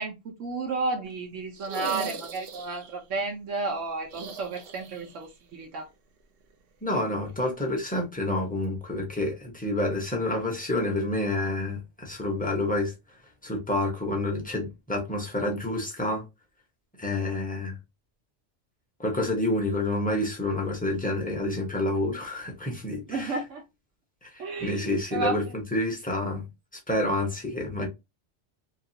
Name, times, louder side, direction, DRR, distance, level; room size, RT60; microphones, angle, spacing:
voice 1, 0.0-5.9 23.1-23.6 24.4-25.5, right 3 dB, 80° right, 1.1 m, -32 dB
sound 1, 1.5-3.0 4.1-5.3 5.5-5.6 7.2-7.3, right 4 dB, 60° right, 0.8 m, -38 dB
voice 2, 6.8-12.9 13.4-16.3 17.0-17.8 19.0-23.3 24.2-26.4 26.9-27.9, left 2 dB, 10° left, 0.7 m, -28 dB
2.9 x 2.4 x 2.7 m
omnidirectional pair, 1.3 m